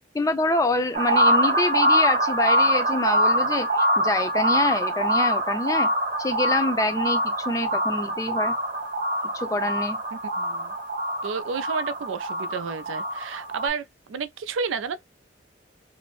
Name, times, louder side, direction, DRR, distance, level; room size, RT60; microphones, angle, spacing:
voice 1, 0.1-5.9 6.2-8.5 9.3-10.0, left 2 dB, 20° left, 0.4 m, -26 dB
sound 1, 0.9-13.7, right 1 dB, 45° right, 0.7 m, -24 dB
voice 2, 10.4-10.7 11.2-15.0, right 5 dB, 85° right, 0.4 m, -31 dB
2.6 x 2.0 x 3.0 m
head